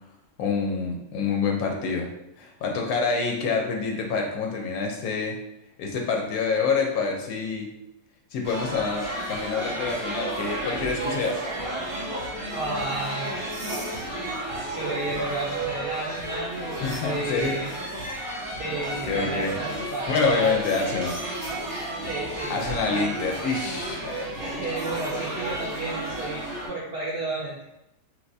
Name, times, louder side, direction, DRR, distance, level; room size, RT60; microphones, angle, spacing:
voice 1, 0.4-2.1 2.4-5.4 5.8-7.7 8.3-11.4 16.8-18.2 19.0-19.5 20.1-21.2 22.5-24.8, left 4 dB, 70° left, 1 dB, 1.0 m, -27 dB
sound 1, 8.4-26.7, right 2 dB, 35° right, 1.1 m, -32 dB
voice 2, 12.5-14.0 14.6-17.7 18.6-21.0 22.0-23.2 24.4-26.4 26.7-27.6, right 2 dB, 70° right, -5 dB, 0.5 m, -32 dB
3.3 x 2.9 x 2.6 m, 0.86 s
omnidirectional pair, 1.7 m